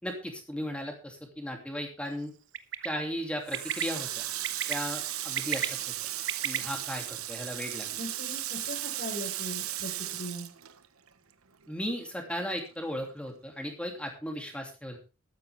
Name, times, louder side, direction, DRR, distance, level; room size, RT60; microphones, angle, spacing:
voice 1, 0.0-2.3 2.8-4.2 4.7-5.8 6.4-8.0 11.7-15.0, equal, 5° left, 2 dB, 2.9 m, -36 dB
Bird, 2.5-2.9 3.5-3.8 4.4-4.7 5.2-6.6, right 9 dB, 60° right, 1.0 m, -31 dB
Water tap faucet, 3.5-11.3 11.6-12.9, right 13 dB, 90° right, 1.1 m, -36 dB
voice 2, 8.0-10.5, left 1 dB, 50° left, 1 dB, 5.1 m, -40 dB
14.0 x 13.0 x 3.5 m, 0.31 s
head